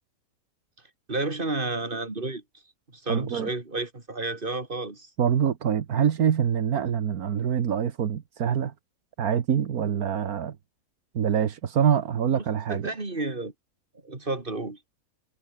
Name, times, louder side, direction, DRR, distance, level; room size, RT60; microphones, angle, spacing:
voice 1, 1.1-2.4 2.9-5.1 12.7-13.5 14.0-14.8, right 2 dB, 35° right, 3.6 m, -31 dB
voice 2, 3.1-3.5 5.2-8.7 9.2-10.6 11.1-12.9, right 8 dB, 85° right, 1.7 m, -25 dB
omnidirectional pair, 1.5 m